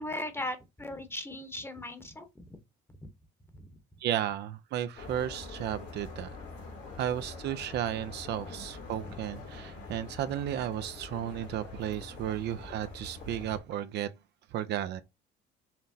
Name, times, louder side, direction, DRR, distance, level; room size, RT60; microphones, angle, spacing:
voice 1, 0.0-2.6 3.6-3.8, left 1 dB, 10° left, 0.9 m, -38 dB
voice 2, 4.0-6.4 7.0-14.1 14.5-15.0, right 11 dB, 65° right, 0.5 m, -34 dB
sound 1, 5.0-13.6, left 3 dB, 75° left, 2.3 m, -45 dB
5.7 x 2.1 x 2.7 m
cardioid pair, 90°, 19 cm